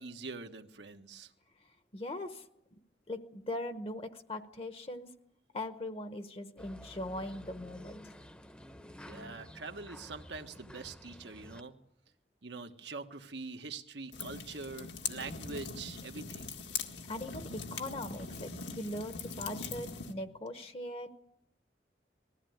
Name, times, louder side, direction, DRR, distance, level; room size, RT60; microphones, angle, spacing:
voice 1, 0.0-1.3 9.1-11.7 12.4-16.5, right 3 dB, 80° right, 6 dB, 1.4 m, -44 dB
voice 2, 1.9-2.4 3.1-5.1 5.5-8.0 17.1-21.1, left 1 dB, 30° left, 9 dB, 0.9 m, -40 dB
sound 1, 6.6-11.6, equal, 5° left, 0.8 m, -51 dB
sound 2, 14.1-20.1, left 5 dB, 80° left, 1.9 m, -41 dB
20.5 x 15.0 x 9.4 m, 0.82 s
head